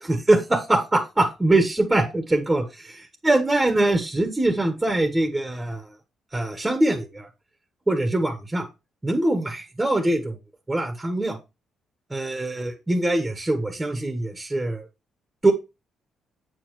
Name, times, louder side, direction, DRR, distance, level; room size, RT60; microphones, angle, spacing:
voice 1, 0.0-2.6 3.2-5.9 6.3-7.3 7.9-8.7 9.0-10.4 10.7-11.4 12.1-14.9 15.4-15.5, right 2 dB, 15° right, 4 dB, 1.4 m, -22 dB
8.1 x 7.2 x 3.2 m, 0.26 s
cardioid pair, 90°, 0 cm